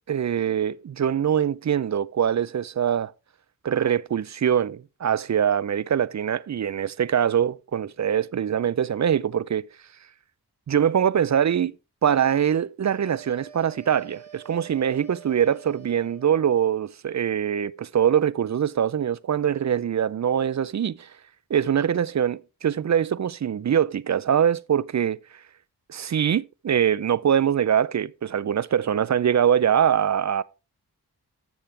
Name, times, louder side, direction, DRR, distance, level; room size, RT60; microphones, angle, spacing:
voice 1, 0.1-3.1 3.6-9.7 10.7-11.8 12.0-21.1 21.5-25.2 25.9-30.4, right 9 dB, 45° right, 0.5 m, -23 dB
sound 1, 13.0-16.5, right 8 dB, 5° left, 6.2 m, -48 dB
11.5 x 7.4 x 3.3 m
cardioid pair, 45°, 39 cm